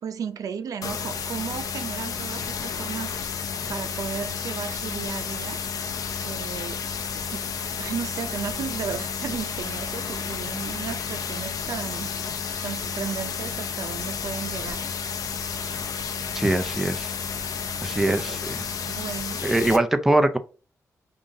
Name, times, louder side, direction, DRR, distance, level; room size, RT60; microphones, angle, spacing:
voice 1, 0.0-3.1 3.7-5.6 6.2-6.8 7.3-7.4 7.8-12.1 12.6-14.8 17.8-18.4 18.9-19.4, right 7 dB, 75° right, 0.6 m, -34 dB
sound 1, 0.8-19.8, left 6 dB, 75° left, 0.6 m, -31 dB
voice 2, 16.3-17.1 17.8-18.6 19.4-20.4, right 1 dB, 5° right, 0.4 m, -22 dB
5.4 x 2.5 x 3.8 m
wide cardioid pair, 160°, 6 cm